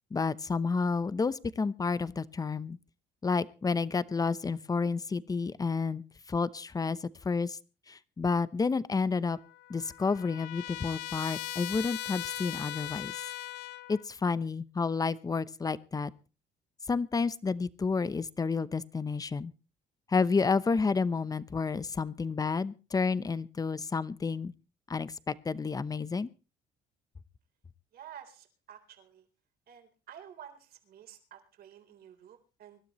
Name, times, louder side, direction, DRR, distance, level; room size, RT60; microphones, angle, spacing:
voice 1, 0.1-2.8 3.2-6.0 6.3-7.6 7.9-9.4 9.7-13.2 13.9-16.1 16.9-19.5 20.1-24.5 24.9-26.3, left 4 dB, 20° left, 17 dB, 0.8 m, -30 dB
Trumpet, 9.3-14.1, left 15 dB, 90° left, 0.9 m, -39 dB
voice 2, 27.9-29.3 29.7-32.8, right 9 dB, 65° right, 5 dB, 3.8 m, -51 dB
24.5 x 12.5 x 3.1 m, 0.33 s
cardioid pair, 110°, 17 cm